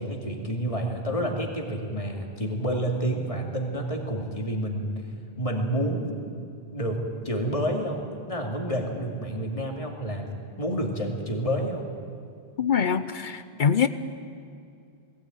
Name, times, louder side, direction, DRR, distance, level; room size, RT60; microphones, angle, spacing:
voice 1, 0.0-4.9 5.4-6.1 6.7-8.0 8.3-10.3 10.6-11.9, right 1 dB, 35° left, 2 dB, 2.5 m, -29 dB
voice 2, 12.6-13.9, left 7 dB, 55° left, 12 dB, 0.8 m, -24 dB
20.0 x 16.0 x 9.1 m, 2.4 s
omnidirectional pair, 1.0 m